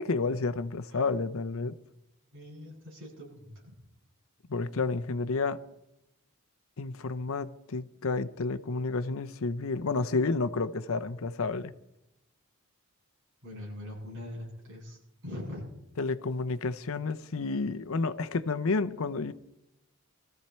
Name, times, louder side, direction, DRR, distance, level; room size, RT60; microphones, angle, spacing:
voice 1, 0.0-1.8 4.5-5.6 6.8-11.7 16.0-19.3, left 3 dB, 65° left, 0.7 m, -30 dB
voice 2, 2.3-3.7 13.4-15.6, left 1 dB, 60° right, 7.9 m, -42 dB
21.5 x 14.5 x 4.4 m
head